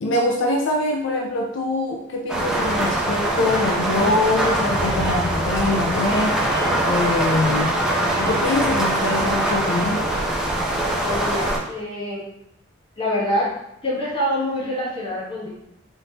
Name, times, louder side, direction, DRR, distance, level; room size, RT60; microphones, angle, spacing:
voice 1, 0.0-6.4 6.8-7.7 8.2-10.1, left 2 dB, 75° left, 1 dB, 0.4 m, -23 dB
sound 1, 2.3-11.6, right 1 dB, 5° right, 0.6 m, -22 dB
voice 2, 11.0-12.2 13.0-13.5 13.8-15.5, left 1 dB, 30° left, -6 dB, 1.3 m, -25 dB
4.1 x 3.5 x 2.8 m, 0.79 s
head